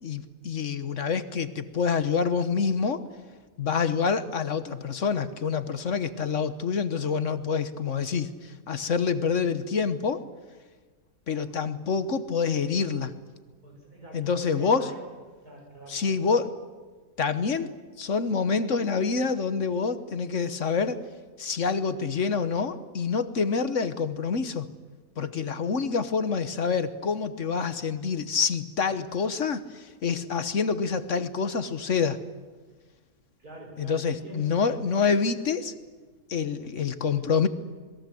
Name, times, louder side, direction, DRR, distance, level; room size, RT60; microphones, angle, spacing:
voice 1, 0.0-3.0 3.6-10.2 11.3-13.1 14.1-14.9 15.9-16.6 17.2-21.0 21.4-24.7 25.2-32.2 33.8-35.7 36.3-37.5, left 5 dB, 55° left, 11 dB, 1.4 m, -27 dB
voice 2, 13.6-15.1 15.4-16.2 33.4-34.5, right 2 dB, 80° right, 1 dB, 7.4 m, -44 dB
27.5 x 21.5 x 7.8 m, 1.4 s
omnidirectional pair, 1.6 m